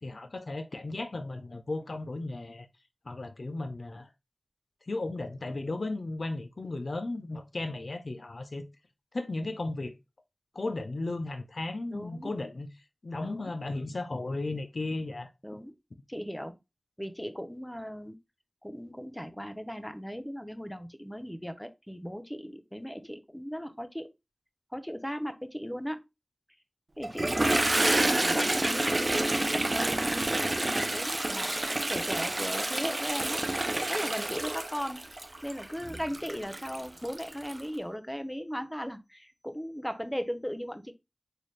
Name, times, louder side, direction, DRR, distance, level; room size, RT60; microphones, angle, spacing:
voice 1, 0.0-2.7 3.1-4.1 4.9-8.6 9.1-10.0 10.5-12.7 13.0-15.3, left 2 dB, 80° left, 0.4 m, -35 dB
voice 2, 11.9-12.3 13.2-13.5 15.4-15.7 16.1-16.5 17.0-18.2 18.6-24.0 24.7-26.0 27.0-35.1 35.4-40.9, equal, 10° left, 0.6 m, -37 dB
Toilet flush, 27.0-37.6, right 2 dB, 45° right, 0.5 m, -29 dB
4.0 x 2.2 x 3.2 m
wide cardioid pair, 40°, 0 cm